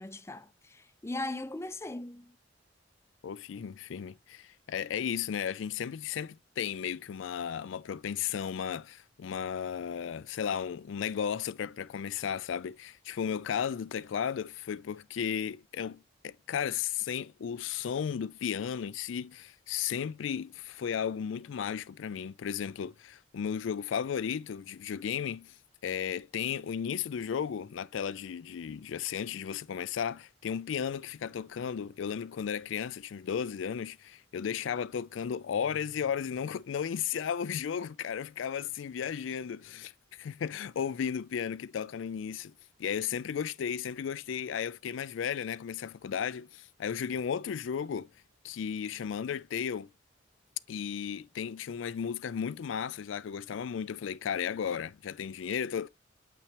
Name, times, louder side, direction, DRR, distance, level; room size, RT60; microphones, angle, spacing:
voice 1, 0.0-2.3, left 2 dB, 15° left, 0.5 m, -39 dB
voice 2, 3.2-25.6 25.8-42.5 42.8-48.1 48.4-49.9 50.7-55.9, left 8 dB, 80° left, 0.4 m, -34 dB
7.8 x 6.0 x 2.9 m
head